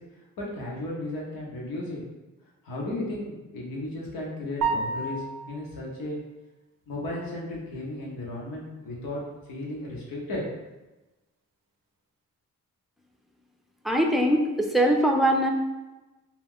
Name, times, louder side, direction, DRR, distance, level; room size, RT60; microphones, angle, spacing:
voice 1, 0.4-2.0 2.6-6.2 6.9-9.2 9.5-10.4, left 1 dB, 85° left, -3 dB, 0.8 m, -34 dB
sound 1, 4.6-5.7, right 4 dB, 75° right, 0.5 m, -29 dB
voice 2, 13.8-15.5, right 1 dB, ahead, 1 dB, 0.5 m, -22 dB
2.3 x 2.3 x 3.5 m, 1.1 s
supercardioid pair, 45°, 34 cm